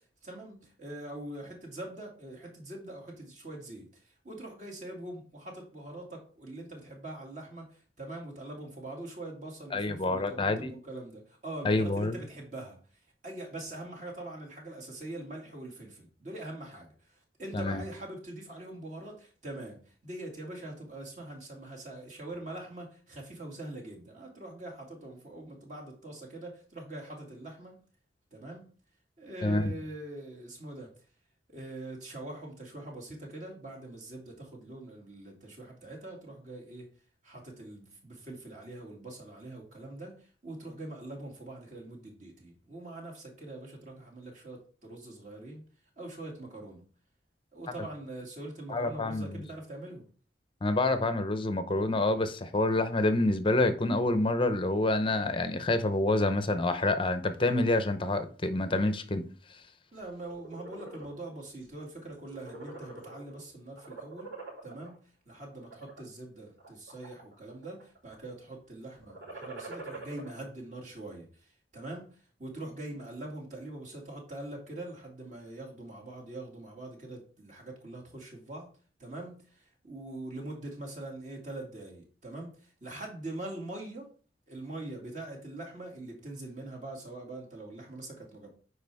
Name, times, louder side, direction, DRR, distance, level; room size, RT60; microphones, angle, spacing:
voice 1, 0.2-12.8 13.2-27.8 28.3-28.7 29.2-30.9 31.5-36.9 37.2-45.6 46.0-46.8 47.5-50.1 59.9-64.3 64.6-78.7 79.0-84.1 84.5-88.5, right 2 dB, 45° right, 2.4 m, -43 dB
voice 2, 9.7-10.7 11.6-12.2 17.5-17.8 29.4-29.8 48.7-49.4 50.6-59.2, left 2 dB, 30° left, 0.7 m, -27 dB
sound 1, 60.1-61.1 61.6-61.8 62.1-63.4 63.8-64.9 65.5-66.0 66.6-67.3 67.6-68.1 69.0-70.3, right 2 dB, 80° right, 4.1 m, -44 dB
9.3 x 4.9 x 3.5 m
head